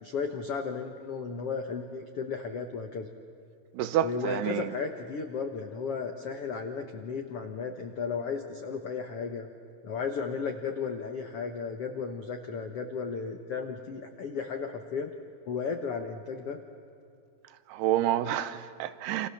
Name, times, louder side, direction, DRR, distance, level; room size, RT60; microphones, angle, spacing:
voice 1, 0.0-3.1 4.0-9.5 9.8-15.1 15.4-16.6, left 5 dB, 80° left, 1.3 m, -34 dB
voice 2, 3.7-4.7 17.7-19.3, right 11 dB, 80° right, 2.9 m, -28 dB
29.0 x 27.5 x 7.2 m
omnidirectional pair, 4.7 m